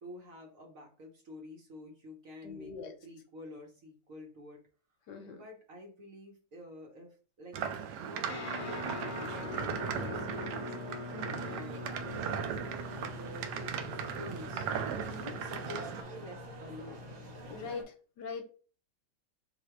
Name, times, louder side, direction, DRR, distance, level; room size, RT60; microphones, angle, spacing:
voice 1, 0.0-4.6 5.2-10.8 11.3-12.6 13.0-14.7 15.3-17.0, left 1 dB, 50° right, 1.2 m, -49 dB
voice 2, 2.4-2.9 5.1-5.4 11.1-11.5 14.9-15.3 17.5-18.4, left 5 dB, 70° left, 1.2 m, -43 dB
sound 1, 7.5-16.0, right 7 dB, 70° right, 1.0 m, -38 dB
Guitar, 8.3-17.7, left 4 dB, 50° left, 0.7 m, -44 dB
sound 2, 11.8-17.8, right 2 dB, 90° right, 2.0 m, -48 dB
3.9 x 2.7 x 4.5 m
omnidirectional pair, 2.1 m